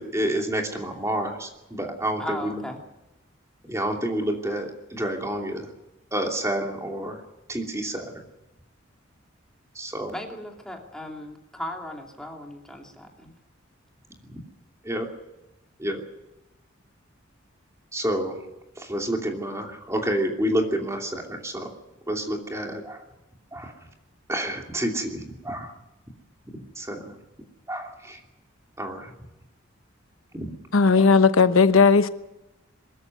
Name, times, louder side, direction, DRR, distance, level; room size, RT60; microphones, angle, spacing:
voice 1, 0.0-2.6 3.6-5.7 6.1-7.2 7.5-8.1 9.7-10.1 14.3-14.4 14.8-15.1 15.8-16.0 17.9-18.4 18.8-21.7 22.1-23.0 23.5-23.7 24.3-25.7 26.8-27.2 27.7-28.2 28.8-29.1 30.3-30.5 31.0-31.1, right 1 dB, 15° right, 2.8 m, -29 dB
voice 2, 2.2-2.8 10.1-13.3, left 1 dB, 5° left, 2.7 m, -37 dB
voice 3, 30.7-32.1, left 4 dB, 90° left, 1.0 m, -16 dB
22.5 x 13.5 x 9.4 m
head